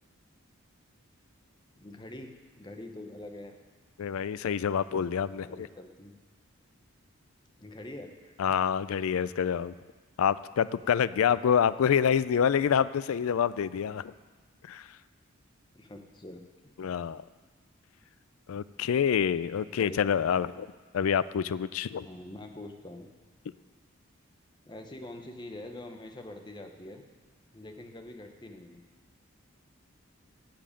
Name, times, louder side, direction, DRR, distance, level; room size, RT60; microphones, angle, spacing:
voice 1, 1.7-3.6 5.4-6.1 7.6-8.6 15.7-16.7 19.7-20.6 22.0-23.1 24.7-27.0 27.5-28.8, left 1 dB, 20° left, 5 dB, 0.8 m, -45 dB
voice 2, 4.0-5.7 8.4-9.7 10.2-14.1 14.7-14.9 16.8-17.2 18.5-20.7 20.9-22.1, left 8 dB, 80° left, 17 dB, 0.4 m, -27 dB
8.7 x 7.7 x 8.6 m, 1.4 s
head